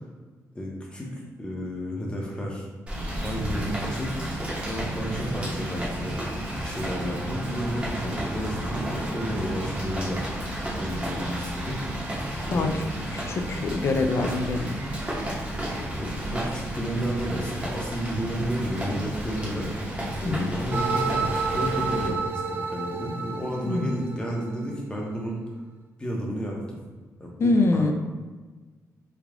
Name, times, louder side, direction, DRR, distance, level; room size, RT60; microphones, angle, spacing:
voice 1, 0.5-2.7 3.2-4.2 4.7-6.2 6.6-10.2 10.7-11.9 12.4-12.7 16.0-19.7 20.2-25.4 26.0-26.8 27.2-27.9, equal, 15° left, -2 dB, 0.8 m, -32 dB
Rain, 2.9-22.1, equal, 20° right, 0.9 m, -34 dB
sound 1, 2.9-22.3, right 1 dB, 65° right, 0.7 m, -36 dB
voice 2, 12.5-14.8 20.2-20.6 23.6-24.0 27.4-27.9, left 3 dB, 45° left, 6 dB, 0.4 m, -25 dB
sound 2, 20.7-24.7, right 5 dB, 35° right, 0.4 m, -30 dB
3.3 x 2.3 x 3.6 m, 1.3 s
cardioid pair, 125°, 6 cm